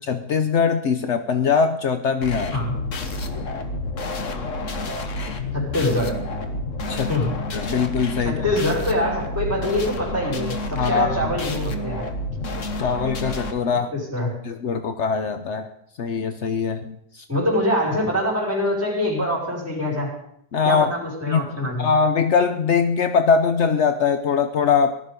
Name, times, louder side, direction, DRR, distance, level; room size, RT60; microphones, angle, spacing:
voice 1, 0.1-2.6 6.9-7.1 7.5-8.3 10.8-11.2 12.8-13.9 14.4-15.7 16.0-17.2 20.5-20.9 21.3-21.4 21.8-25.0, left 6 dB, 70° left, 9 dB, 0.6 m, -21 dB
sound 1, 2.2-13.5, left 2 dB, 45° left, 1.4 m, -29 dB
voice 2, 5.5-6.2 7.1-7.4 8.2-12.1 13.9-14.4 17.3-20.1 20.7-21.9, left 1 dB, 5° right, -4 dB, 5.4 m, -24 dB
18.5 x 12.5 x 5.2 m, 0.72 s
omnidirectional pair, 2.2 m